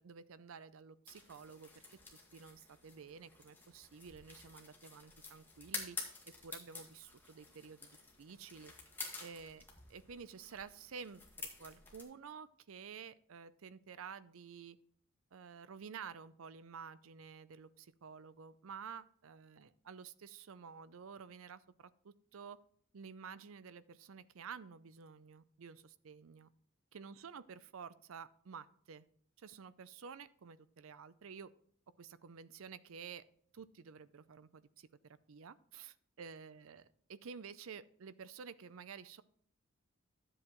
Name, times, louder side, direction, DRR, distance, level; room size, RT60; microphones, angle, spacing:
voice 1, 0.0-2.0 2.3-6.0 6.3-7.9 8.2-8.7 9.2-9.6 9.9-14.8 15.3-22.6 22.9-26.5 26.9-29.1 29.4-31.5 32.0-33.2 33.5-39.2, right 6 dB, 75° right, 16 dB, 0.5 m, -51 dB
sound 1, 1.1-12.0, left 3 dB, 10° left, 1.8 m, -50 dB
12.0 x 7.7 x 3.0 m, 0.62 s
head